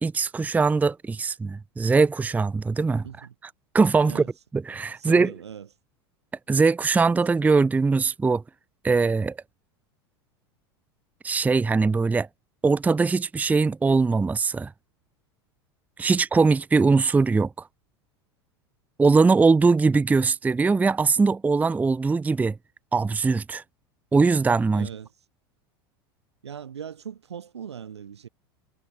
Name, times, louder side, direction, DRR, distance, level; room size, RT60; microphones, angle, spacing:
voice 1, 0.0-3.0 3.7-4.2 4.5-5.3 6.5-8.4 8.8-9.4 11.2-12.3 12.6-14.7 16.0-17.5 19.0-22.6 22.9-23.6 24.1-24.9, right 4 dB, 10° right, 0.5 m, -21 dB
voice 2, 3.0-3.3 4.0-4.3 4.9-5.7 16.1-16.2 24.7-25.1 26.4-28.3, right 8 dB, 85° right, 3.0 m, -40 dB
hypercardioid pair, 90°, 14 cm